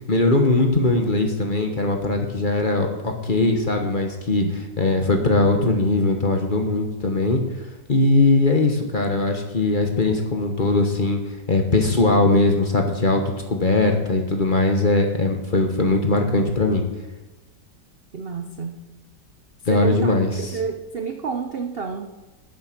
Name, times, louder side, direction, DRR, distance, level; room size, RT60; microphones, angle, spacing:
voice 1, 0.1-4.4 4.8-7.4 7.9-11.2 11.5-16.8 19.7-20.5, left 2 dB, 30° left, 4 dB, 1.1 m, -20 dB
voice 2, 18.1-18.9 19.7-22.1, right 6 dB, 55° right, 6 dB, 0.6 m, -30 dB
11.0 x 7.8 x 5.9 m, 1.1 s
omnidirectional pair, 1.9 m